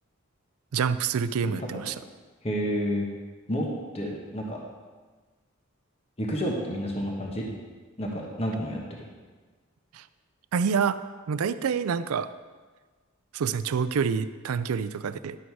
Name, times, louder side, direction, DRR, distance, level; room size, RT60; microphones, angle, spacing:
voice 1, 0.7-1.9 9.9-10.0 10.5-11.0 11.3-12.3 13.3-15.4, right 6 dB, 90° right, 14 dB, 0.4 m, -27 dB
voice 2, 1.4-1.9 2.4-3.1 3.5-3.7 3.9-4.6 6.2-7.5 8.0-9.0, equal, 30° left, -1 dB, 1.2 m, -30 dB
10.5 x 6.2 x 4.7 m, 1.4 s
head